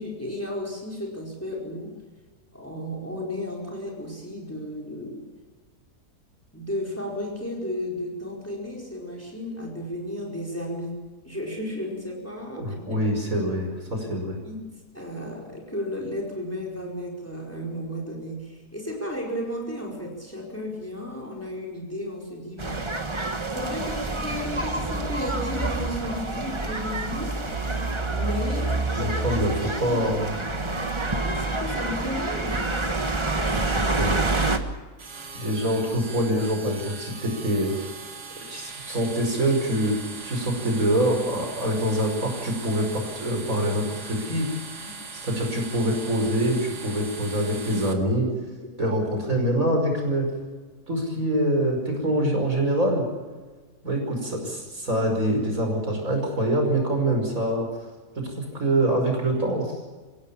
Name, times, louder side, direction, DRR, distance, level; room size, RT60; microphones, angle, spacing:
voice 1, 0.0-1.9 2.5-5.3 6.5-11.0 11.2-13.0 14.0-22.8 23.5-27.3 28.1-28.8 29.4-30.0 31.2-32.8 44.8-44.9 48.6-48.7, left 1 dB, 10° left, -1 dB, 4.6 m, -34 dB
voice 2, 12.6-14.4 29.0-30.3 33.5-34.2 35.3-37.7 38.5-40.0 40.2-44.9 45.2-48.3 48.8-50.3 50.9-53.0 53.8-57.7 58.2-59.7, right 1 dB, 55° right, 2 dB, 5.9 m, -25 dB
sound 1, 22.6-34.6, right 2 dB, 20° right, 1.3 m, -27 dB
sound 2, 35.0-47.9, right 4 dB, 80° right, 2.6 m, -40 dB
26.5 x 17.0 x 7.3 m, 1.3 s
omnidirectional pair, 1.7 m